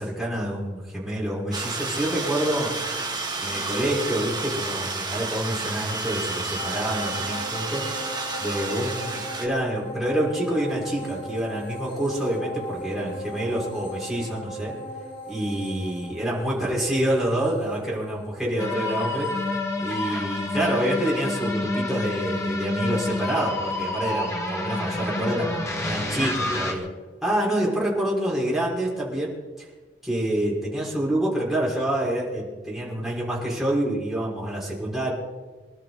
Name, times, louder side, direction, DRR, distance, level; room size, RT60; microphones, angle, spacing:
voice 1, 0.0-2.7 3.4-7.9 8.4-14.7 15.3-19.3 19.8-26.9 27.2-29.3 29.6-29.7 30.0-35.1, right 1 dB, ahead, -6 dB, 6.0 m, -27 dB
sound 1, 1.5-9.5, right 3 dB, 25° right, 2.4 m, -31 dB
sound 2, 6.5-20.2 20.6-20.7, equal, 75° left, 7.3 m, -38 dB
sound 3, 18.6-26.7, left 2 dB, 15° left, 2.4 m, -28 dB
26.5 x 12.5 x 4.3 m, 1.3 s
head